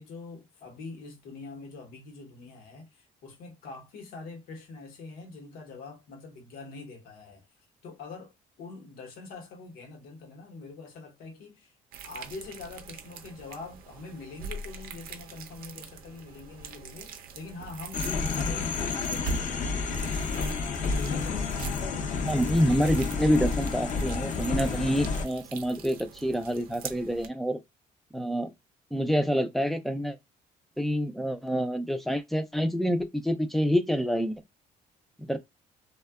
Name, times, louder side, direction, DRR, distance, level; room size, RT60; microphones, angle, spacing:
voice 1, 0.0-7.5 7.8-11.8 12.0-20.1 21.1-21.8, left 3 dB, 80° left, 0.9 m, -44 dB
sound 1, 11.9-27.3, right 5 dB, 75° right, 0.5 m, -43 dB
sound 2, 17.9-25.3, left 4 dB, 55° left, 0.5 m, -30 dB
voice 2, 22.2-27.6 28.1-28.5 28.9-30.2 30.8-34.4 35.2-35.4, equal, ahead, 0.3 m, -27 dB
2.6 x 2.2 x 2.3 m
cardioid pair, 105°, 15 cm